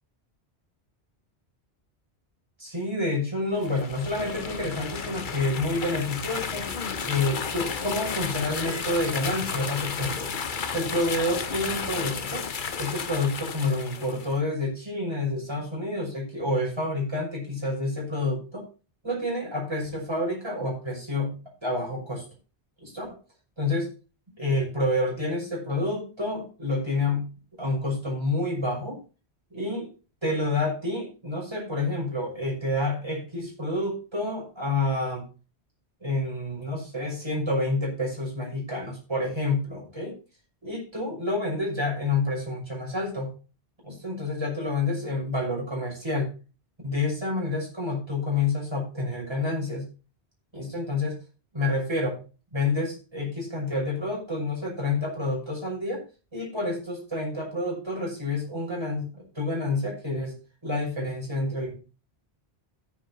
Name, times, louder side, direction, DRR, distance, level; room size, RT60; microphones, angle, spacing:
voice 1, 2.6-6.7 7.0-10.3 10.7-12.4 12.8-18.7 19.0-21.3 21.6-22.2 22.8-23.2 23.6-23.9 24.4-27.3 27.6-29.0 29.5-29.9 30.2-35.2 36.0-40.2 40.6-43.3 43.8-46.3 46.8-49.9 50.5-51.2 51.5-52.2 52.5-56.0 56.3-60.3 60.6-61.8, left 2 dB, 25° right, -3 dB, 6.2 m, -28 dB
sound 1, 3.5-14.3, left 6 dB, 50° left, 1.0 m, -33 dB
17.0 x 9.4 x 2.7 m, 0.34 s
omnidirectional pair, 1.1 m